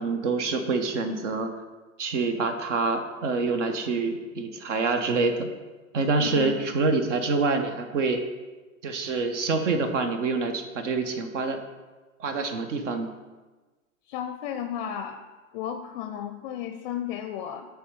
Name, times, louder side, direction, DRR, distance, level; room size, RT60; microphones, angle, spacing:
voice 1, 0.0-1.5 2.0-5.5 5.9-8.2 8.8-11.6 12.2-13.1, right 4 dB, 60° right, 7 dB, 0.9 m, -26 dB
voice 2, 6.2-6.7 14.1-15.2 15.5-17.7, left 9 dB, 35° left, 7 dB, 0.5 m, -33 dB
8.5 x 3.5 x 5.2 m, 1.3 s
figure-of-eight pair, 100°, 41 cm